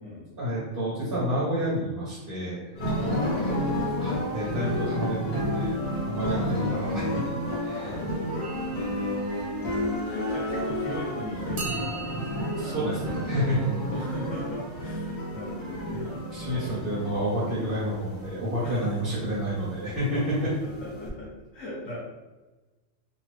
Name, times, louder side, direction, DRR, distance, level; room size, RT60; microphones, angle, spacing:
voice 1, 0.4-2.6 4.0-5.8 6.0-7.1 7.6-7.9 12.5-13.7 16.3-20.5, equal, 45° right, -8 dB, 1.1 m, -29 dB
sound 1, 2.7-21.1, equal, 35° left, 0.9 m, -31 dB
voice 2, 2.9-4.2 6.2-6.8 7.7-8.3 8.7-8.8 9.5-9.6 10.0-12.4 13.9-16.1 16.4-16.9 18.6-18.9 20.6-22.0, equal, 65° left, -5 dB, 1.0 m, -39 dB
sound 2, 8.4-10.9 11.6-15.5, right 3 dB, 70° right, 1.2 m, -43 dB
2.8 x 2.5 x 3.2 m, 1.2 s
omnidirectional pair, 1.4 m